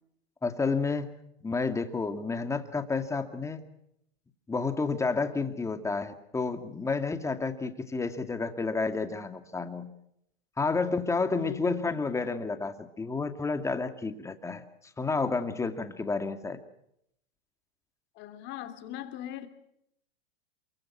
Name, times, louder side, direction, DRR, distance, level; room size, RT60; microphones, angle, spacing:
voice 1, 0.4-1.1 1.4-3.6 4.5-9.9 10.6-14.6 15.0-16.6, left 4 dB, 10° left, 8 dB, 2.2 m, -30 dB
voice 2, 11.4-11.8 18.1-19.5, left 12 dB, 35° left, 9 dB, 3.1 m, -40 dB
28.5 x 24.0 x 6.1 m, 0.76 s
hypercardioid pair, 130°, 31 cm